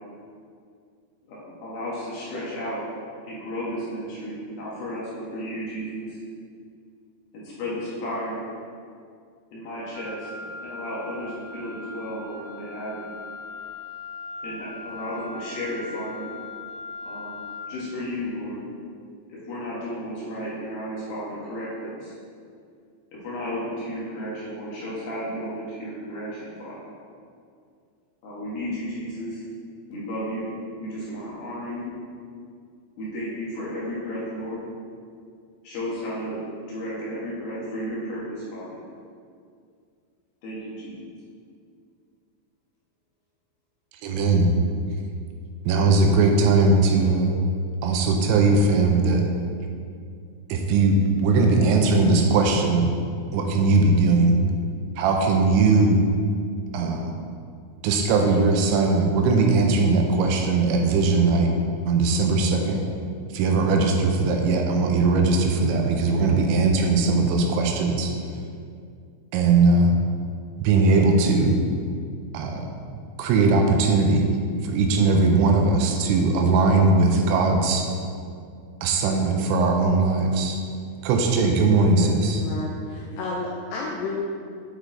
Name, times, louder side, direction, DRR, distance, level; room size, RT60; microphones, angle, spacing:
voice 1, 1.3-2.8 3.2-6.2 7.3-8.4 9.5-13.0 14.4-16.3 17.0-17.4 17.7-18.7 19.3-22.1 23.1-26.8 28.2-29.4 29.9-30.5 30.8-31.9 33.0-34.7 35.6-38.8 40.4-41.1, equal, 65° left, -7 dB, 2.8 m, -33 dB
Wind instrument woodwind instrument, 9.9-17.7, left 3 dB, 60° right, 2.1 m, -39 dB
voice 2, 44.0-44.5 45.7-47.4 47.8-49.2 50.5-52.9 53.3-54.4 55.0-56.0 56.7-57.1 57.8-61.5 61.9-62.8 63.3-68.1 69.3-70.0 70.6-71.6 72.3-72.6 73.2-74.3 74.6-77.9 78.8-80.6 81.0-82.4, right 3 dB, 80° right, 2 dB, 3.0 m, -20 dB
voice 3, 81.9-84.2, left 3 dB, 90° left, -2 dB, 2.4 m, -32 dB
8.7 x 4.8 x 3.8 m, 2.3 s
omnidirectional pair, 5.4 m